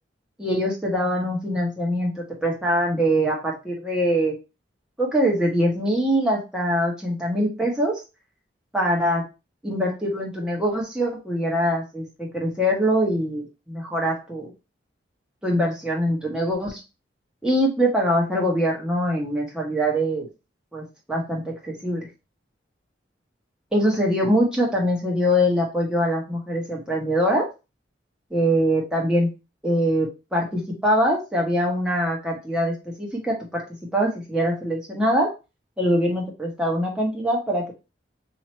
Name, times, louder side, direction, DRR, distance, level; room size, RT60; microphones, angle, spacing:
voice 1, 0.4-4.3 5.0-8.0 8.7-9.2 9.6-14.5 15.4-16.8 17.4-20.3 20.7-22.1 23.7-27.5 28.3-29.3 29.6-33.6 33.9-35.3 35.8-37.7, equal, 5° right, -3 dB, 1.2 m, -23 dB
3.1 x 2.8 x 4.2 m, 0.28 s
head